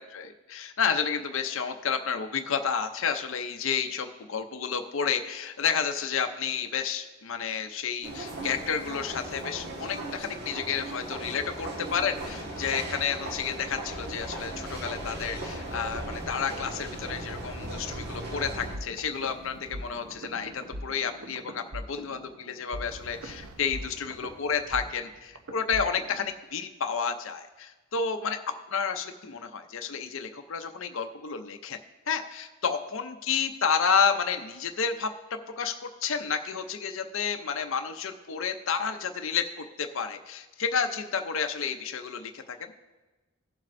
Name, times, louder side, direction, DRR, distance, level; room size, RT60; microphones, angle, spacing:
voice 1, 0.0-28.4 28.7-31.8 32.1-42.6, left 6 dB, 65° left, 6 dB, 0.6 m, -31 dB
sound 1, 8.0-18.8, right 1 dB, 50° right, 1.6 m, -37 dB
sound 2, 18.7-26.3, equal, 70° right, 0.8 m, -42 dB
17.5 x 7.3 x 2.6 m, 1.2 s
head